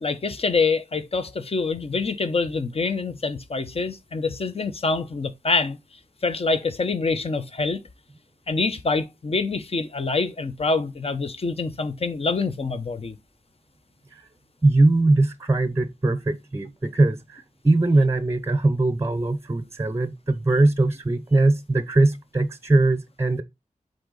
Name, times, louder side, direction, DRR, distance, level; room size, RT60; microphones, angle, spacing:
voice 1, 0.0-5.8 6.2-7.8 8.5-13.2, left 4 dB, 45° left, 0.9 m, -25 dB
voice 2, 14.6-23.4, right 2 dB, 20° right, 0.6 m, -21 dB
7.7 x 3.9 x 3.9 m
wide cardioid pair, 105°, 13 cm